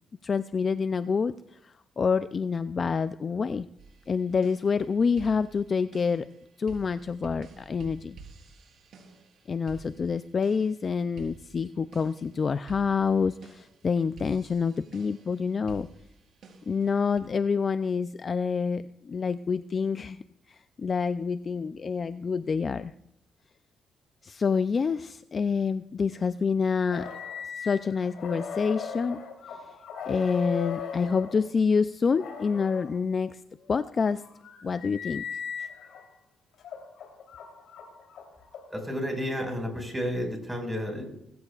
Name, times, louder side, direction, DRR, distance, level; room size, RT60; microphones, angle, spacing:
voice 1, 0.2-3.7 4.1-6.3 6.6-8.2 9.5-15.9 16.7-20.2 20.5-22.9 24.2-27.1 27.6-29.2 30.1-33.4 33.7-34.2 34.6-35.3, left 5 dB, 40° left, 12 dB, 0.4 m, -27 dB
sound 1, 3.8-17.2, right 4 dB, 65° right, 4.0 m, -51 dB
sound 2, 26.9-31.4 32.1-32.9 33.7-36.0 36.6-39.0, left 6 dB, 75° left, 3.5 m, -38 dB
voice 2, 38.7-41.0, equal, 10° right, 2 dB, 5.4 m, -31 dB
20.5 x 15.0 x 2.4 m, 0.77 s
cardioid pair, 90°, 0 cm